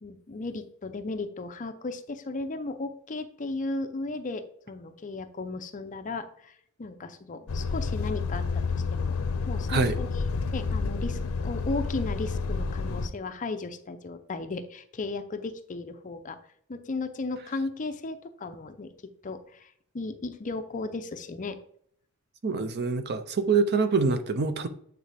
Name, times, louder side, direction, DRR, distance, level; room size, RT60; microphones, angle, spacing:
voice 1, 0.0-6.5 6.8-9.2 9.5-16.4 16.7-18.9 19.2-19.7 19.9-21.6, left 3 dB, 40° left, 0.5 m, -35 dB
Truck, 7.5-13.1, left 4 dB, 85° left, 0.6 m, -29 dB
voice 2, 22.4-24.7, right 4 dB, 50° right, 0.6 m, -25 dB
8.8 x 3.9 x 3.4 m
head